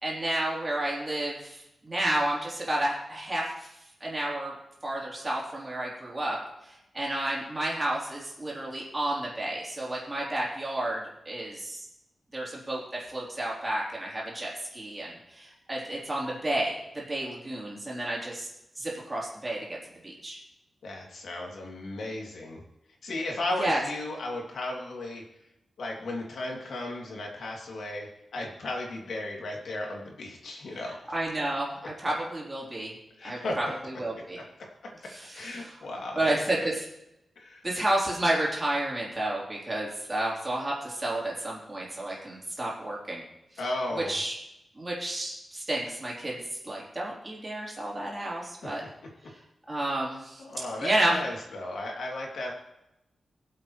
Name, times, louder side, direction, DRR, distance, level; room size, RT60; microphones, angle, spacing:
voice 1, 0.0-3.7 4.0-4.5 4.8-6.4 6.6-11.9 12.3-18.5 18.8-19.8 20.0-20.4 23.6-23.8 30.7-30.8 31.1-31.7 32.0-32.9 33.2-34.4 35.1-35.8 36.2-36.6 37.6-43.2 43.9-44.3 44.8-48.8 49.7-50.4 50.8-51.2, right 1 dB, 20° right, -4 dB, 3.6 m, -31 dB
voice 2, 20.8-22.6 23.0-25.2 25.8-31.0 33.2-33.6 34.8-36.7 37.4-37.6 43.6-44.2 48.6-48.7 50.4-52.5, left 2 dB, 85° left, -1 dB, 2.8 m, -35 dB
23.5 x 7.9 x 3.2 m, 0.88 s
wide cardioid pair, 165°, 0 cm